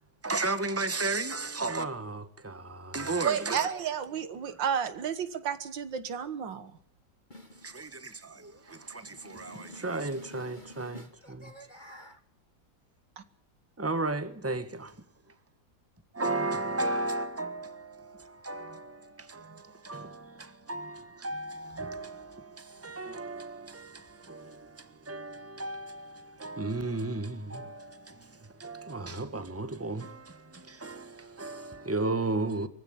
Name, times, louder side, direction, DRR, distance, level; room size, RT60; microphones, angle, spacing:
voice 1, 0.2-3.8 4.5-4.6 7.6-11.5 13.8-15.0 16.1-32.7, right 2 dB, 10° right, 1.3 m, -35 dB
voice 2, 3.2-6.8 13.2-13.3, right 8 dB, 80° right, 2.1 m, -32 dB
voice 3, 7.3-8.0 8.3-12.2, equal, 30° left, 1.3 m, -50 dB
24.0 x 15.5 x 8.7 m
omnidirectional pair, 2.0 m